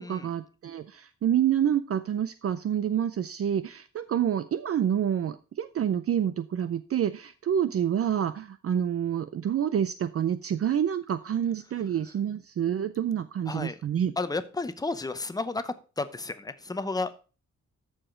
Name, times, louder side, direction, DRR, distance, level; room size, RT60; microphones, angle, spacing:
voice 1, 0.0-14.1, right 9 dB, 50° right, 12 dB, 0.5 m, -28 dB
voice 2, 13.5-13.8 14.2-17.1, left 3 dB, 15° left, 12 dB, 0.7 m, -32 dB
14.0 x 4.9 x 3.8 m, 0.35 s
wide cardioid pair, 155°, 30 cm